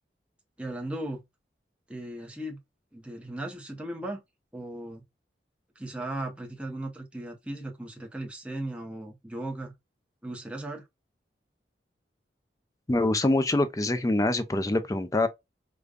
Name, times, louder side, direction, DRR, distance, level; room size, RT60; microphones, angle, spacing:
voice 1, 0.6-1.2 1.9-2.6 2.9-4.2 4.5-5.0 5.8-9.7 10.2-10.8, right 1 dB, 5° right, 0.8 m, -37 dB
voice 2, 12.9-15.3, left 2 dB, 20° left, 0.4 m, -25 dB
5.0 x 2.3 x 2.3 m
head